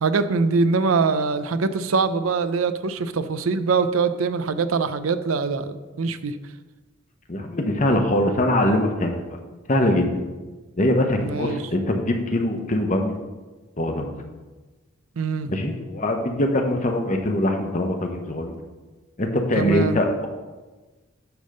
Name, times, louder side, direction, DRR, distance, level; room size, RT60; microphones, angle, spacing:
voice 1, 0.0-6.4 11.2-11.6 15.2-15.5 19.6-20.0, right 4 dB, 90° right, 12 dB, 0.5 m, -23 dB
voice 2, 7.3-9.4 9.7-10.1 10.8-13.2 13.8-14.1 15.5-18.5 19.2-20.3, left 1 dB, 40° left, 4 dB, 1.0 m, -22 dB
10.0 x 3.5 x 6.5 m, 1.2 s
head